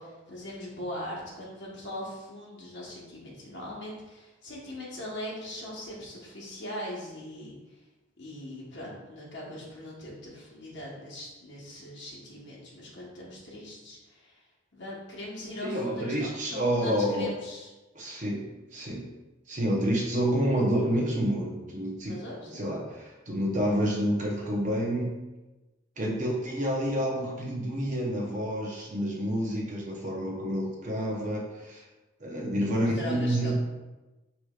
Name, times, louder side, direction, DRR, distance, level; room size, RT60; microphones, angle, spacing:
voice 1, 0.0-7.6 8.2-14.4 14.7-17.7 22.1-22.7 32.7-33.5, left 1 dB, 60° left, -5 dB, 1.0 m, -40 dB
voice 2, 15.6-17.3 17.9-19.1 19.5-22.2 22.4-25.1 26.0-31.8 32.2-33.5, equal, 40° right, -2 dB, 0.8 m, -29 dB
4.7 x 2.9 x 2.3 m, 1.1 s
head